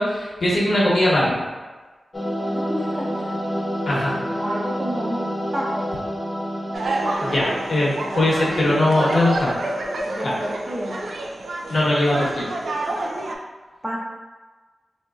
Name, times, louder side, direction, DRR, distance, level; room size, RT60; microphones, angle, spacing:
voice 1, 0.0-1.4 3.9-4.2 7.2-9.5 10.2-10.3 11.7-12.5, left 1 dB, 60° left, -5 dB, 1.0 m, -20 dB
sound 1, 2.1-10.1, equal, 20° left, 0.5 m, -29 dB
voice 2, 2.5-3.4 4.2-5.9 10.1-11.0 13.8-14.0, equal, 15° right, -4 dB, 0.7 m, -30 dB
sound 2, 6.7-13.3, right 2 dB, 80° right, 0.4 m, -28 dB
4.2 x 2.7 x 2.3 m, 1.3 s
wide cardioid pair, 135°, 0 cm